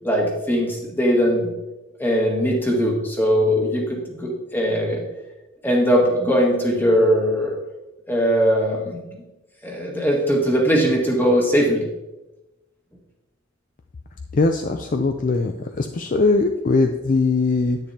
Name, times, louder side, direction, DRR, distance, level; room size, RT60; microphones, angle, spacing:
voice 1, 0.0-1.5 2.0-5.0 5.6-7.5 8.1-9.2 9.6-11.9, equal, 10° left, -1 dB, 1.6 m, -20 dB
voice 2, 14.3-17.8, left 3 dB, 40° left, 5 dB, 0.4 m, -20 dB
10.0 x 8.7 x 2.8 m, 1.0 s
head